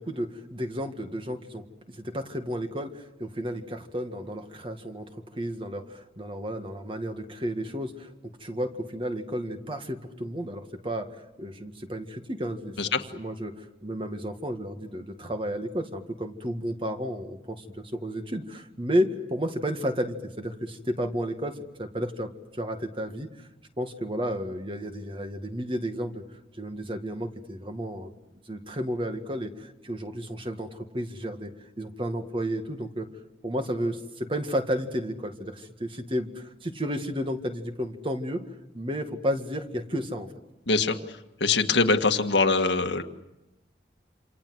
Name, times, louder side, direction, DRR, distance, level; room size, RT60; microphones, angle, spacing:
voice 1, 0.0-8.1 8.4-23.5 23.8-28.1 28.5-31.5 31.8-33.1 33.4-38.4 38.7-40.3, equal, 30° right, 6 dB, 1.9 m, -32 dB
voice 2, 40.7-41.0 41.4-43.0, left 4 dB, 90° left, 6 dB, 1.7 m, -23 dB
28.0 x 27.0 x 7.9 m, 0.96 s
head